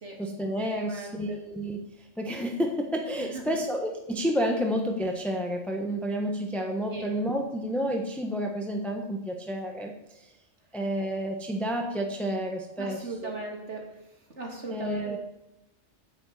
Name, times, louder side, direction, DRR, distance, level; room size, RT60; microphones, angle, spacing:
voice 1, 0.2-10.3 10.7-13.3 14.7-15.2, equal, ahead, 2 dB, 1.1 m, -30 dB
voice 2, 0.7-1.4 3.2-3.6 6.9-7.1 12.8-14.0 14.3-15.2, right 2 dB, 85° right, 0 dB, 3.0 m, -38 dB
9.9 x 7.7 x 8.3 m, 0.92 s
omnidirectional pair, 1.2 m